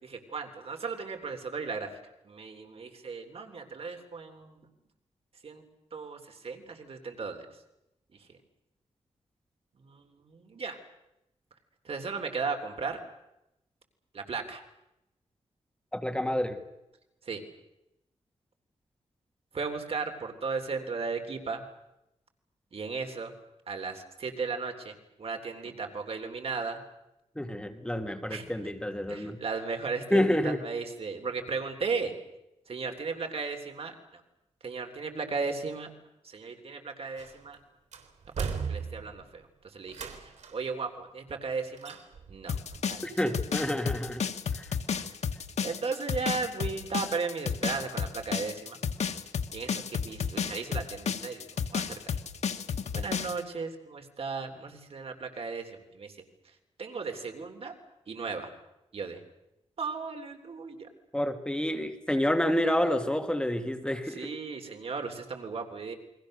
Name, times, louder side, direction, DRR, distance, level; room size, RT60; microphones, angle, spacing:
voice 1, 0.0-1.9 2.2-4.7 5.4-5.6 5.9-7.5 9.8-10.8 11.8-13.0 14.1-14.6 17.2-17.4 19.5-21.6 22.7-23.3 23.7-26.8 28.3-28.4 29.1-32.1 32.7-34.2 34.6-35.9 36.2-37.6 38.4-39.5 39.7-42.0 42.3-42.6 42.9-43.0 45.0-45.2 45.6-48.8 49.5-52.0 52.9-56.1 56.8-57.7 58.1-58.5 58.9-59.2 59.8-60.9 64.1-65.9, right 4 dB, 55° right, 5 dB, 3.4 m, -36 dB
voice 2, 15.9-16.6 27.4-29.4 30.1-30.6 43.0-44.2 44.6-44.8 61.1-64.3, left 1 dB, 5° left, 6 dB, 1.8 m, -28 dB
sound 1, 37.2-37.5 37.9-39.3 39.9-40.7 41.8-42.4 42.7-42.8, right 6 dB, 90° right, 3.5 m, -37 dB
sound 2, 42.5-53.4, left 6 dB, 75° left, 1.4 m, -32 dB
29.0 x 22.5 x 6.6 m, 0.89 s
wide cardioid pair, 125°, 11 cm